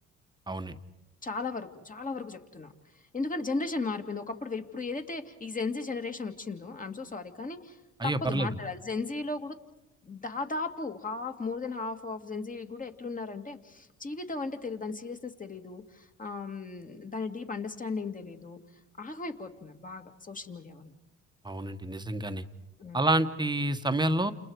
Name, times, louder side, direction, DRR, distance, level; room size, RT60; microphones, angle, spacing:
voice 1, 1.2-2.7 3.1-7.8 8.0-9.6 10.0-18.6 19.0-20.9 22.8-23.1, left 3 dB, 25° left, 6 dB, 2.4 m, -36 dB
voice 2, 8.0-8.5 21.4-22.4 22.9-24.3, right 1 dB, 15° right, 10 dB, 1.4 m, -28 dB
30.0 x 29.0 x 4.9 m, 0.96 s
supercardioid pair, 70°, 31 cm